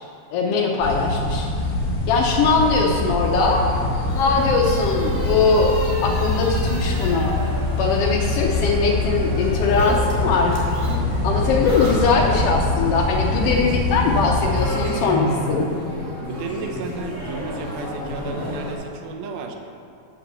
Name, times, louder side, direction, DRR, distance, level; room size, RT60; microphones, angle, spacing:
voice 1, 0.3-1.5 2.1-3.6 4.1-5.7 6.0-7.4 7.8-10.6 11.2-15.7, left 4 dB, 90° left, 0 dB, 1.3 m, -21 dB
sound 1, 0.8-14.7, left 2 dB, 45° left, 1.9 m, -24 dB
sound 2, 1.5-18.7, left 1 dB, 15° right, 0.9 m, -33 dB
sound 3, 3.4-10.0 10.3-12.5, right 1 dB, 45° right, 3.0 m, -36 dB
voice 2, 16.2-19.6, right 5 dB, 70° right, 4 dB, 1.9 m, -33 dB
8.4 x 5.9 x 6.8 m, 2.4 s
omnidirectional pair, 3.6 m